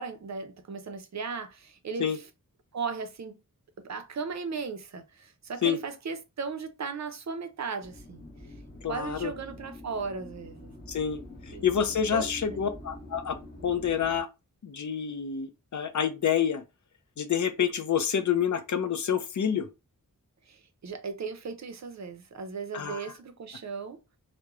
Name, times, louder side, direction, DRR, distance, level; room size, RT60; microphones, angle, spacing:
voice 1, 0.0-2.2 2.7-3.4 3.8-8.3 8.9-10.7 11.5-11.7 12.1-12.6 20.5-24.0, right 5 dB, 55° right, 0.5 m, -36 dB
sound 1, 7.8-14.2, left 1 dB, 25° left, 1.0 m, -45 dB
voice 2, 8.8-9.3 10.9-11.2 11.5-13.4 13.6-14.3 14.6-16.6 17.2-19.7 22.7-23.1, left 8 dB, 60° left, 0.5 m, -28 dB
2.9 x 2.1 x 2.3 m
wide cardioid pair, 85°, 34 cm